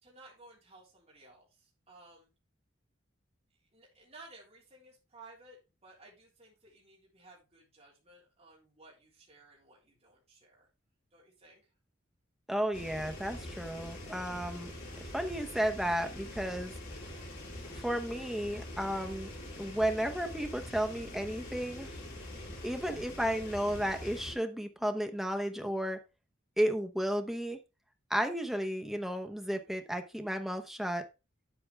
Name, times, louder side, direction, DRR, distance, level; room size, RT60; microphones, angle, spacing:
voice 1, 0.0-2.3 3.5-10.7 11.1-11.7, right 2 dB, 30° right, -4 dB, 3.6 m, -57 dB
voice 2, 12.5-14.7 15.1-16.7 17.7-21.9 22.6-26.0 26.6-27.6 28.1-31.0, equal, ahead, 5 dB, 0.9 m, -33 dB
sound 1, 12.7-24.3, left 1 dB, 45° left, 4.2 m, -44 dB
8.6 x 8.1 x 3.4 m, 0.27 s
head